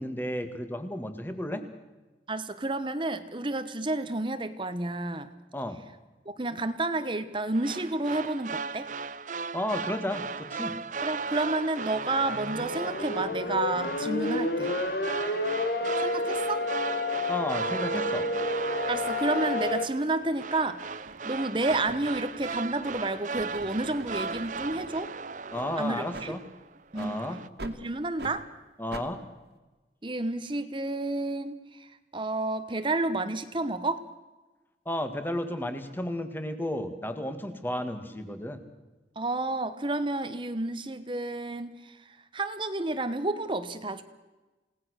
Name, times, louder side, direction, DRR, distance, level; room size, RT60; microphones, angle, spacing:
voice 1, 0.0-1.6 5.5-5.8 9.5-10.8 17.3-18.3 25.5-26.4 26.9-27.4 28.8-29.2 34.9-38.6, left 1 dB, 10° left, 8 dB, 2.0 m, -33 dB
voice 2, 2.3-5.3 6.2-8.9 11.0-14.8 16.0-16.7 18.9-25.1 25.8-26.3 26.9-27.2 27.6-28.5 30.0-34.0 39.2-44.0, right 2 dB, 30° right, 11 dB, 1.1 m, -30 dB
sound 1, 7.5-26.6 26.9-27.5, right 4 dB, 45° right, 0.6 m, -37 dB
sound 2, 12.2-19.9, left 2 dB, 60° left, 1.8 m, -30 dB
sound 3, 20.2-20.3 21.0-21.3 21.7-25.1 25.5-25.7 26.1-26.3 26.9-27.1 27.6-27.8 28.2-28.4 28.9-29.1, right 2 dB, 70° right, 2.2 m, -44 dB
29.0 x 18.5 x 6.5 m, 1.2 s
head